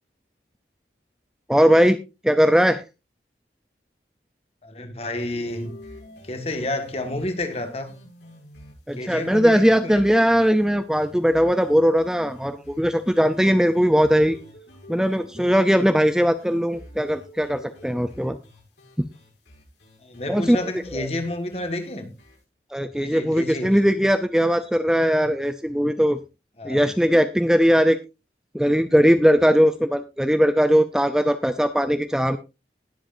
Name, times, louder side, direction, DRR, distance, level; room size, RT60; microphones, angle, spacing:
voice 1, 1.5-2.8 8.9-14.4 14.9-18.4 20.3-20.6 20.9-21.1 22.7-26.2 26.6-28.0 28.5-32.4, equal, 5° right, 0.5 m, -19 dB
voice 2, 4.6-5.8 6.2-7.9 9.0-10.1 20.0-22.2 23.0-23.8 26.6-26.9, left 1 dB, 35° left, 1.7 m, -30 dB
sound 1, 5.1-22.4, left 1 dB, 90° left, 7.0 m, -48 dB
20.0 x 7.8 x 2.6 m
head